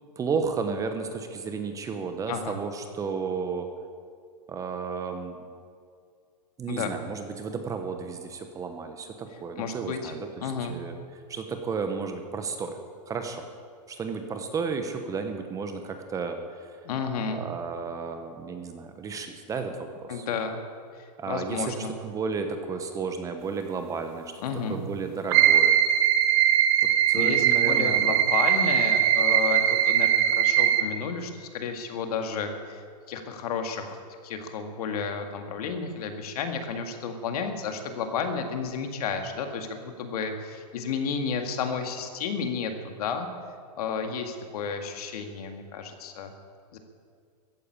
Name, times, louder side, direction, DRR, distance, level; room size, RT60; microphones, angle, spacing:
voice 1, 0.2-3.7 4.5-5.4 6.6-10.9 11.3-12.8 13.1-13.5 13.9-16.7 17.3-20.2 21.2-24.3 24.7-25.8 27.1-28.2, right 5 dB, 15° right, 6 dB, 1.0 m, -33 dB
voice 2, 9.6-10.1 10.4-10.8 16.8-17.4 20.1-20.6 20.9-21.9 24.4-24.8 27.1-34.0 34.2-43.3 43.8-46.3 46.7-46.8, left 5 dB, 65° left, 5 dB, 2.0 m, -32 dB
sound 1, 25.3-30.8, right 10 dB, 40° right, 1.3 m, -21 dB
14.5 x 9.4 x 8.6 m, 2.1 s
hypercardioid pair, 145°, 21 cm